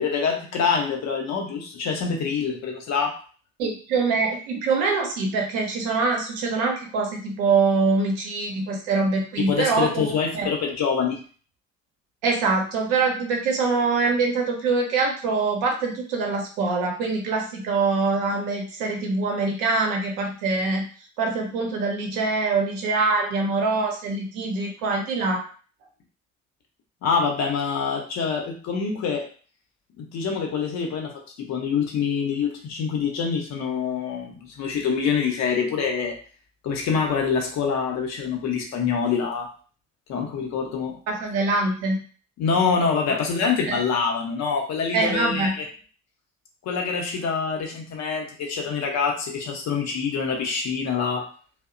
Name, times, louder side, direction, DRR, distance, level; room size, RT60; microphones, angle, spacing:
voice 1, 0.0-3.2 9.4-11.2 27.0-29.2 30.0-31.1 31.4-36.2 36.6-39.5 40.1-41.0 42.4-45.6 46.6-51.3, left 6 dB, 45° left, 1 dB, 0.7 m, -25 dB
voice 2, 3.6-10.0 10.3-10.5 12.2-20.9 21.2-25.4 41.1-42.0 43.7-43.8 44.9-45.6, right 3 dB, 60° right, 1 dB, 0.8 m, -24 dB
2.7 x 2.0 x 2.5 m, 0.41 s
figure-of-eight pair, 50°, 39 cm